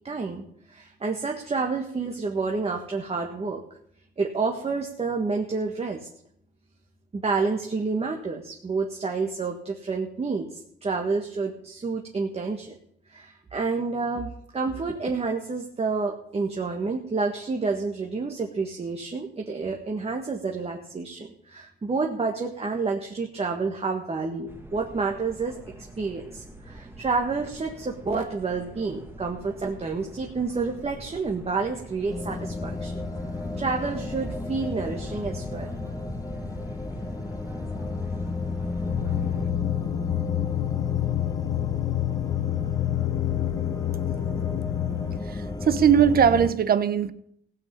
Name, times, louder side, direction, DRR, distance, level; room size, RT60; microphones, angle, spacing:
voice 1, 0.0-3.6 4.2-6.1 7.1-12.8 13.1-25.5 26.0-32.9 33.6-35.7, right 4 dB, 30° right, 1 dB, 1.5 m, -29 dB
sound 1, 24.5-39.5, right 1 dB, 10° right, 1.8 m, -43 dB
sound 2, 32.1-46.5, left 3 dB, 15° left, 1.1 m, -33 dB
sound 3, 38.9-45.2, left 17 dB, 85° left, 0.7 m, -28 dB
voice 2, 45.3-47.1, right 8 dB, 50° right, 13 dB, 0.9 m, -20 dB
16.0 x 5.7 x 8.5 m, 0.70 s
cardioid pair, 90°, 20 cm